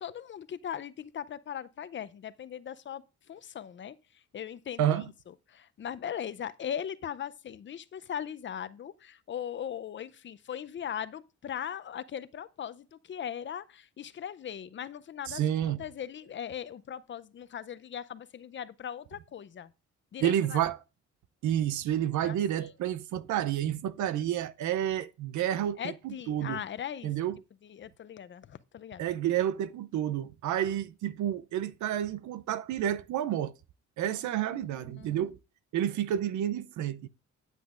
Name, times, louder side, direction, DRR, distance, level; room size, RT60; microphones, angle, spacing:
voice 1, 0.0-3.0 3.3-5.1 5.5-19.7 20.1-20.6 22.2-22.4 25.8-27.1 27.6-29.1 34.1-35.2, left 9 dB, 40° left, 0.6 m, -39 dB
voice 2, 4.8-5.1 15.3-15.8 20.2-20.8 21.4-26.6 27.0-27.4 29.0-33.5 34.0-35.4 35.7-37.1, right 11 dB, 75° right, 0.6 m, -30 dB
9.1 x 8.0 x 2.5 m
cardioid pair, 90°, 30 cm